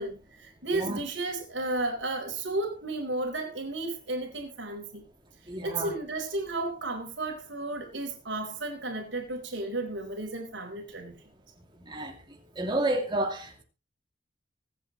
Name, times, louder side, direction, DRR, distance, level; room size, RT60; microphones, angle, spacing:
voice 1, 0.0-5.0 5.6-11.1, right 2 dB, 70° right, 4.4 m, -33 dB
voice 2, 5.5-5.9 11.9-12.2 12.6-13.6, right 1 dB, 25° right, 2.6 m, -30 dB
24.5 x 8.2 x 3.2 m
head